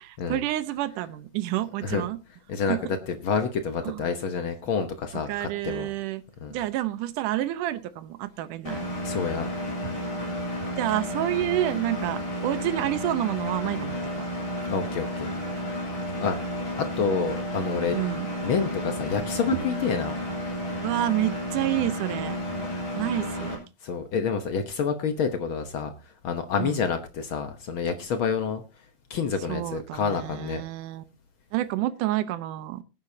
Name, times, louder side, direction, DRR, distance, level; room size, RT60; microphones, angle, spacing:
voice 1, 0.0-2.2 2.7-2.8 3.8-4.1 5.3-6.2 6.5-8.9 10.8-14.3 17.9-18.3 20.8-22.4 23.0-23.6 26.6-26.8 29.5-31.0 31.5-32.8, right 14 dB, 80° right, 13 dB, 2.4 m, -29 dB
voice 2, 2.5-5.9 6.4-6.6 9.0-9.5 14.7-15.3 16.2-16.4 17.0-18.0 18.4-20.2 22.9-23.0 23.8-25.9 26.2-28.6 29.1-30.6, left 5 dB, 70° left, 8 dB, 1.2 m, -28 dB
Engine, 8.6-23.5, equal, 25° left, 3.8 m, -32 dB
20.5 x 9.6 x 2.7 m, 0.28 s
omnidirectional pair, 3.7 m